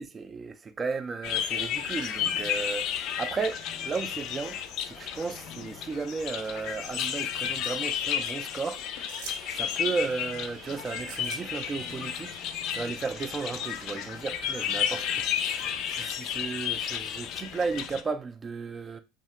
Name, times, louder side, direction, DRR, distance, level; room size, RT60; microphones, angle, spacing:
voice 1, 0.0-4.6 4.9-8.8 9.5-12.4 12.7-19.0, right 4 dB, 25° right, 0.4 m, -34 dB
sound 1, 1.2-18.0, left 9 dB, 60° left, 0.3 m, -32 dB
sound 2, 1.4-16.4, right 5 dB, 55° right, 0.7 m, -51 dB
sound 3, 7.6-8.3 9.1-9.4 9.7-10.4 11.0-11.4 11.8-12.5 13.0-13.1, right 5 dB, 90° right, 0.6 m, -45 dB
2.7 x 2.1 x 3.1 m
supercardioid pair, 115°, 0 cm